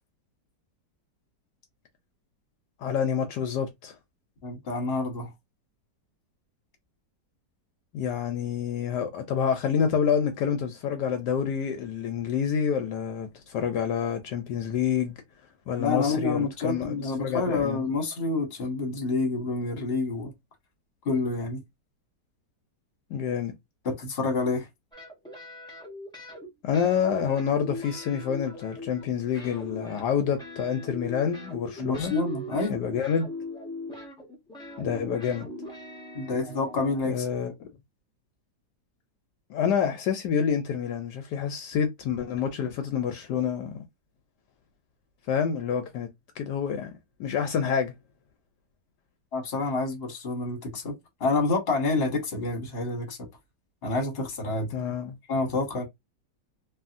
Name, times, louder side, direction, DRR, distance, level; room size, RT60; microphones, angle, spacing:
voice 1, 2.8-3.9 7.9-15.2 15.7-17.8 23.1-23.5 26.6-32.2 32.7-33.3 34.8-35.5 37.1-37.7 39.5-43.8 45.3-46.1 46.4-46.9 47.2-47.9 54.7-55.1, left 7 dB, 75° left, 1.1 m, -28 dB
voice 2, 4.4-5.3 15.8-20.3 21.0-21.6 23.8-24.7 31.8-32.7 36.1-37.3 49.3-50.9 51.2-53.2 53.8-54.7 55.3-55.8, left 3 dB, 40° left, 1.2 m, -28 dB
sound 1, 24.9-26.5 26.7-29.1 29.3-37.0, left 1 dB, 5° left, 0.5 m, -40 dB
2.7 x 2.7 x 2.4 m
omnidirectional pair, 1.9 m